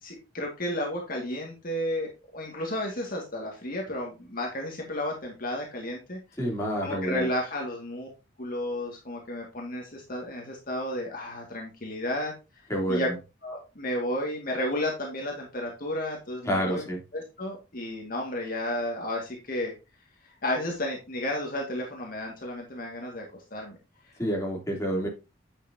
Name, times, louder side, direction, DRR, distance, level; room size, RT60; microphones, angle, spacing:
voice 1, 0.0-6.2 6.8-8.1 8.4-12.3 12.9-13.1 13.4-16.9 17.1-19.7 20.4-23.2 23.5-23.8, left 1 dB, 50° left, -1 dB, 2.1 m, -32 dB
voice 2, 6.4-7.3 12.7-13.0 16.4-17.0 24.2-25.1, equal, 15° left, -3 dB, 3.2 m, -28 dB
10.0 x 6.9 x 2.8 m, 0.28 s
head